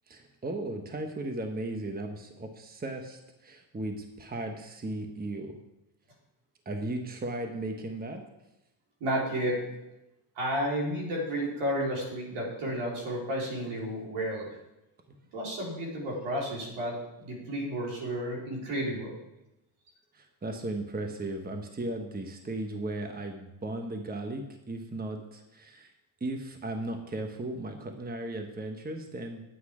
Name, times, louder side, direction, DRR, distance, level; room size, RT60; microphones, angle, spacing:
voice 1, 0.1-5.6 6.6-8.2 15.1-15.2 20.1-25.9 26.2-29.4, right 2 dB, 20° right, 5 dB, 1.2 m, -36 dB
voice 2, 9.0-9.7 10.3-14.6 15.3-17.0 17.2-19.1, equal, 75° right, -3 dB, 4.4 m, -32 dB
9.8 x 8.7 x 4.9 m, 0.92 s
cardioid pair, 90°, 50 cm